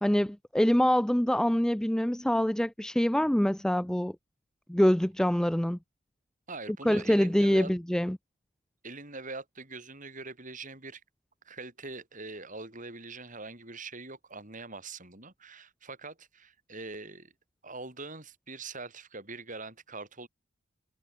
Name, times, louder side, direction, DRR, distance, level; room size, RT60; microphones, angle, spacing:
voice 1, 0.0-4.1 4.7-5.8 6.9-8.2, equal, 5° left, 0.3 m, -25 dB
voice 2, 6.5-7.7 8.8-11.0 11.4-17.3 17.6-20.3, right 3 dB, 35° right, 6.1 m, -43 dB
head